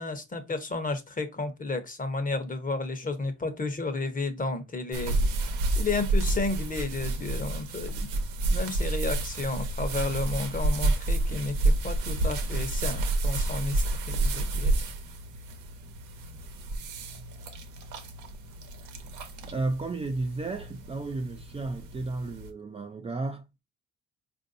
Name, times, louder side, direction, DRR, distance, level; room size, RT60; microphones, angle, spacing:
voice 1, 0.0-5.3 5.8-8.2 8.5-14.7, left 3 dB, 25° left, 1.0 m, -32 dB
sound 1, 4.9-22.5, right 2 dB, 90° right, 0.9 m, -30 dB
voice 2, 19.5-23.4, right 3 dB, 20° right, 0.4 m, -33 dB
4.3 x 2.6 x 2.5 m
cardioid pair, 90°, 30 cm